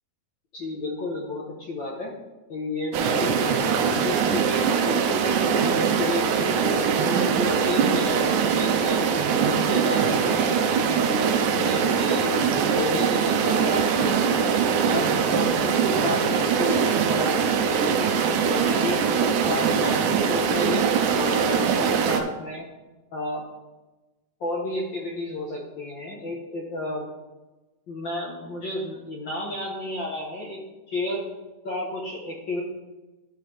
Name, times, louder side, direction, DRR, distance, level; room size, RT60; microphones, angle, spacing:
voice 1, 0.5-2.2 2.5-9.0 9.4-12.4 12.7-14.6 14.9-18.0 18.4-19.0 19.4-22.7 23.1-23.4 24.4-27.1 27.9-30.6 30.9-31.2 31.6-32.6, left 1 dB, 80° left, -2 dB, 1.0 m, -31 dB
sound 1, 2.9-22.2, right 6 dB, 85° right, 2.3 m, -22 dB
12.5 x 5.5 x 3.3 m, 1.1 s
omnidirectional pair, 3.7 m